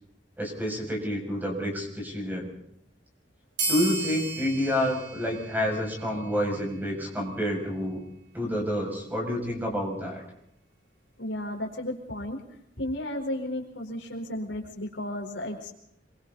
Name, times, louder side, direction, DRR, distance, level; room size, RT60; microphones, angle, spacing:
voice 1, 0.4-2.5 3.7-8.0 8.3-10.2, equal, 10° right, 1 dB, 7.0 m, -29 dB
sound 1, 3.6-6.6, right 2 dB, 80° right, 7.1 m, -34 dB
voice 2, 11.2-12.4 12.8-15.7, left 1 dB, 75° left, 2 dB, 4.4 m, -33 dB
26.5 x 24.0 x 4.1 m, 0.72 s
head